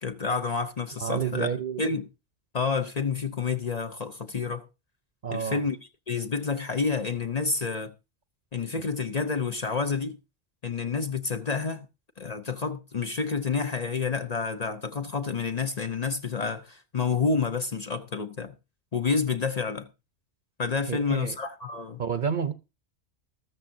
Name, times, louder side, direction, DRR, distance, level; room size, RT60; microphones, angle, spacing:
voice 1, 0.0-1.5 1.8-2.1 2.5-4.7 5.3-5.8 6.1-7.9 8.5-10.2 10.6-11.9 12.2-18.5 18.9-19.9 20.6-22.0, left 5 dB, 40° left, 0.7 m, -29 dB
voice 2, 1.0-1.9 5.2-5.6 20.9-21.4 22.0-22.5, right 7 dB, 50° right, 0.8 m, -29 dB
14.0 x 13.5 x 2.6 m
omnidirectional pair, 1.2 m